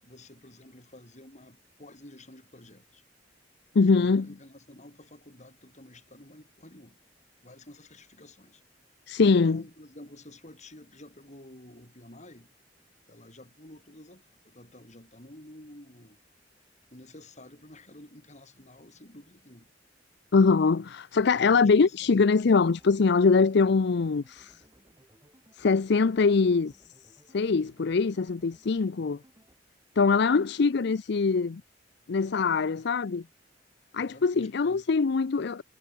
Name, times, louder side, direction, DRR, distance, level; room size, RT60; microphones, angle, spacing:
voice 1, 0.0-3.0 3.8-7.0 7.4-8.6 9.2-12.5 13.1-16.2 16.9-19.7 21.3-22.2 34.0-34.8, left 1 dB, 40° left, 7.4 m, -50 dB
voice 2, 3.7-4.3 9.1-9.6 20.3-24.6 25.5-26.7 27.3-29.2 30.0-31.6 32.1-33.2 33.9-35.6, left 4 dB, 65° left, 0.5 m, -23 dB
sound 1, 22.4-29.5, right 1 dB, 20° right, 5.1 m, -61 dB
head